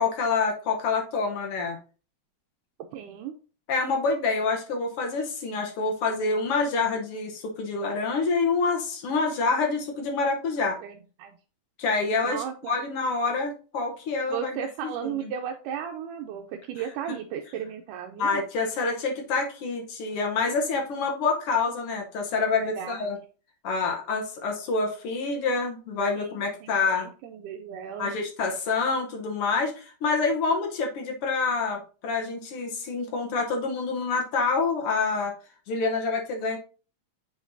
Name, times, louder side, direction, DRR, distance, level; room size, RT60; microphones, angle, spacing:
voice 1, 0.0-1.8 3.7-10.8 11.8-15.3 18.2-23.2 23.6-27.1 28.0-35.3 35.7-36.6, left 4 dB, 65° left, 1 dB, 1.5 m, -27 dB
voice 2, 2.9-3.3 10.8-10.9 11.2-11.3 12.2-12.7 14.3-18.4 22.6-23.1 26.2-28.1, right 9 dB, 85° right, 3 dB, 2.1 m, -35 dB
7.8 x 5.1 x 2.6 m, 0.38 s
omnidirectional pair, 3.6 m